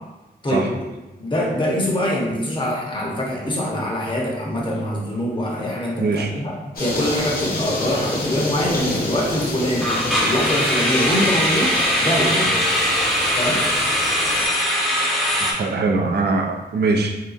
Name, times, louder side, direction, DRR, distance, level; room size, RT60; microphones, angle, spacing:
voice 1, 1.2-6.5 6.8-12.7 13.4-13.7, equal, 30° left, -3 dB, 0.8 m, -24 dB
sound 1, 3.6-3.9 4.2-4.4 4.9-5.0 9.8-15.5, equal, ahead, 0.7 m, -21 dB
voice 2, 6.0-6.3 15.4-17.1, right 3 dB, 75° right, 2 dB, 0.4 m, -21 dB
sound 2, 6.8-14.5, left 2 dB, 60° left, 0.8 m, -28 dB
3.4 x 2.8 x 2.4 m, 1.0 s
wide cardioid pair, 80°, 17 cm